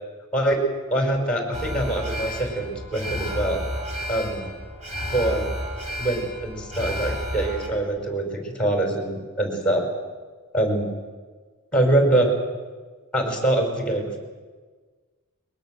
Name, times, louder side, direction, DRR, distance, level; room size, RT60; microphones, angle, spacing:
voice 1, 0.9-3.6 4.1-4.4 5.1-5.5 6.0-9.9 10.5-10.9 11.7-12.3 13.1-14.2, right 1 dB, 5° left, 3 dB, 5.3 m, -24 dB
Alarm, 1.5-7.7, equal, 35° right, 6.0 m, -31 dB
22.0 x 21.0 x 7.9 m, 1.4 s
head